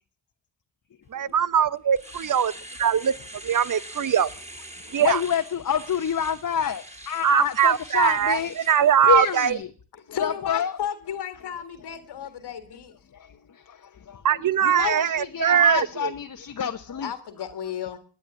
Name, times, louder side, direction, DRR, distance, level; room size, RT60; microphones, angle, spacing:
voice 1, 1.1-2.5 2.8-3.1 3.4-4.3 4.9-5.2 7.2-9.6 14.2-16.1, right 8 dB, 50° right, 0.9 m, -21 dB
Domestic sounds home sounds, 1.3-1.4 1.8-9.5, right 1 dB, 15° right, 4.1 m, -44 dB
voice 2, 5.0-8.5 9.1-9.7 10.2-10.7 14.1-14.2 14.7-17.1, left 8 dB, 50° left, 1.0 m, -27 dB
voice 3, 10.1-12.9 17.0-18.0, left 9 dB, 75° left, 1.7 m, -33 dB
18.5 x 9.9 x 6.9 m
cardioid pair, 55°, 40 cm